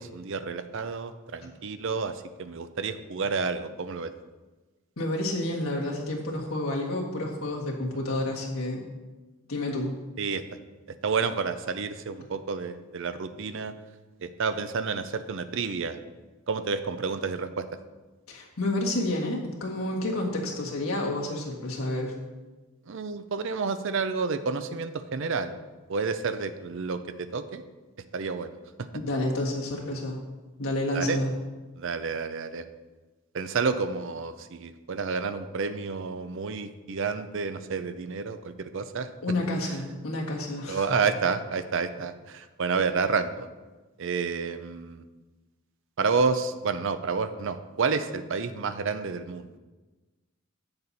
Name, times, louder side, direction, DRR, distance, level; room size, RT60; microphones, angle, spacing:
voice 1, 0.0-4.1 10.2-10.4 11.0-13.7 14.2-16.0 16.5-17.7 22.9-25.5 25.9-27.6 28.1-28.5 30.9-31.2 31.8-32.6 33.3-39.1 40.7-43.5 44.0-45.0 46.0-49.5, right 5 dB, 60° right, 11 dB, 0.5 m, -30 dB
voice 2, 5.0-8.8 9.5-9.9 18.3-22.1 28.9-30.2 30.6-31.3 39.2-40.8, left 1 dB, 80° left, -1 dB, 1.6 m, -29 dB
8.3 x 6.8 x 4.1 m, 1.2 s
head